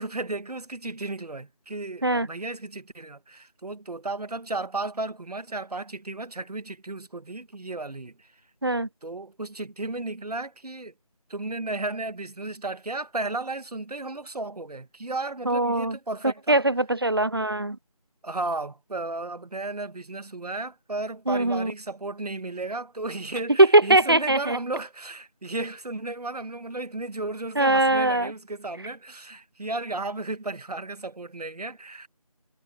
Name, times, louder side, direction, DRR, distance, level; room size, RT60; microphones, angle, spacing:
voice 1, 0.0-8.3 9.0-10.9 11.3-16.6 18.2-32.1, right 2 dB, 85° right, 1.5 m, -34 dB
voice 2, 15.5-16.0 16.5-17.8 21.3-21.7 23.6-24.6 27.6-28.3, right 2 dB, 40° right, 0.6 m, -21 dB
figure-of-eight pair, 175°, 19 cm